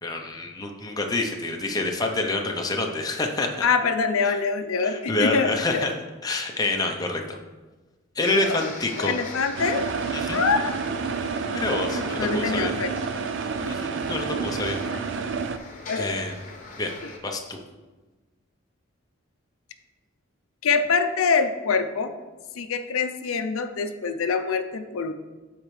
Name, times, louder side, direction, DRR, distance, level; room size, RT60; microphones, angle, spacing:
voice 1, 0.0-3.7 4.2-4.4 4.8-5.9 6.2-7.4 8.2-9.1 10.1-10.5 11.5-12.7 13.7-14.8 16.0-16.4 16.8-16.9 17.2-17.6, left 2 dB, 20° left, 2 dB, 0.6 m, -27 dB
voice 2, 3.6-5.9 8.4-8.6 9.0-9.9 10.3-10.7 11.9-12.9 15.9-16.2 20.6-22.1 22.6-25.1, left 5 dB, 85° left, 8 dB, 0.5 m, -25 dB
sound 1, 8.2-17.2, left 3 dB, 40° left, 1.1 m, -41 dB
sound 2, 9.6-15.6, right 5 dB, 55° right, 0.4 m, -29 dB
13.0 x 4.4 x 3.2 m, 1.2 s
head